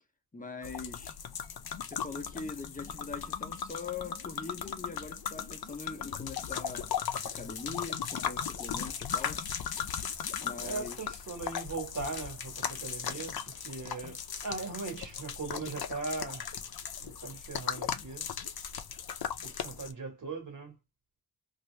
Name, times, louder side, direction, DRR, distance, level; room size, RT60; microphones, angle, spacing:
voice 1, 0.3-1.2 1.9-6.9 7.2-9.5 10.4-11.1, left 4 dB, 20° left, 0.7 m, -42 dB
sound 1, 0.6-19.9, left 8 dB, 75° left, 0.6 m, -37 dB
voice 2, 10.6-16.5 17.0-18.3 19.4-20.8, right 3 dB, 55° right, 1.3 m, -39 dB
2.8 x 2.6 x 3.2 m
wide cardioid pair, 120°, 37 cm